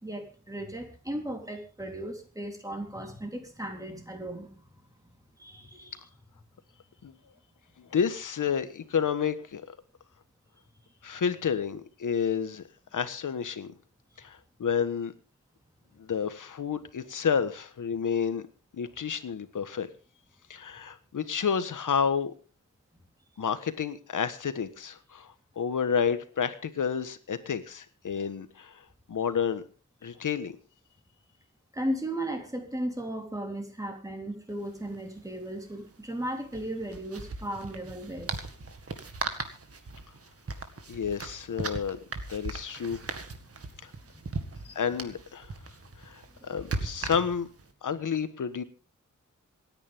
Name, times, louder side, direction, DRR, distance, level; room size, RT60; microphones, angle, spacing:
voice 1, 0.0-4.8 5.4-6.0 31.7-38.5 43.0-43.1 44.1-44.6 46.4-46.6, right 1 dB, 10° right, 3 dB, 3.6 m, -36 dB
voice 2, 7.8-9.6 11.0-12.6 12.9-13.7 14.2-15.1 16.0-18.4 18.7-19.9 20.5-22.3 23.4-28.8 29.1-29.6 30.0-30.5 40.9-42.0 42.3-43.0 43.8-43.9 44.7-45.5 46.0-47.5 47.8-48.6, left 7 dB, 80° left, 11 dB, 1.4 m, -30 dB
sound 1, 34.5-34.6 34.8-35.0 36.4-47.6, right 3 dB, 50° right, 1.9 m, -38 dB
27.0 x 9.9 x 3.6 m, 0.36 s
wide cardioid pair, 140°, 31 cm